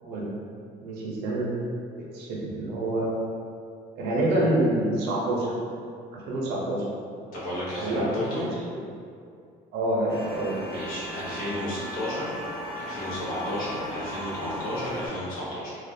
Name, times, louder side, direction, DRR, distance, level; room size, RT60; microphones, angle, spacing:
voice 1, 0.8-1.5 2.1-3.1 4.0-5.5 6.1-6.9 7.8-8.8 9.7-10.5, right 1 dB, 85° right, -4 dB, 0.6 m, -27 dB
voice 2, 7.3-8.4 10.7-12.4 12.8-15.7, left 1 dB, 60° left, -8 dB, 0.7 m, -32 dB
sound 1, 10.1-15.1, equal, 80° left, 1.0 m, -37 dB
2.4 x 2.1 x 2.6 m, 2.3 s
cardioid pair, 150°, 16 cm